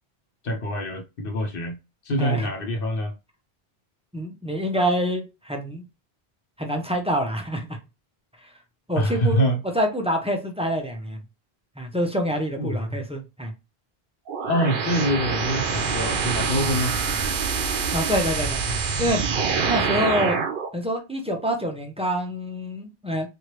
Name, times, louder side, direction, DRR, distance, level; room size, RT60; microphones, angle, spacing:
voice 1, 0.4-1.8 2.0-3.1 8.9-9.6 12.6-13.0 14.4-17.1, equal, 65° left, 0.9 m, -25 dB
voice 2, 2.2-2.5 4.1-5.8 6.6-7.8 8.4-8.5 8.9-9.4 9.7-11.2 11.8-13.5 17.9-19.2 19.6-20.4 20.7-23.3, equal, 10° right, 0.4 m, -26 dB
sound 1, 14.3-20.7, right 5 dB, 65° right, 0.7 m, -25 dB
3.1 x 2.6 x 2.9 m
omnidirectional pair, 1.0 m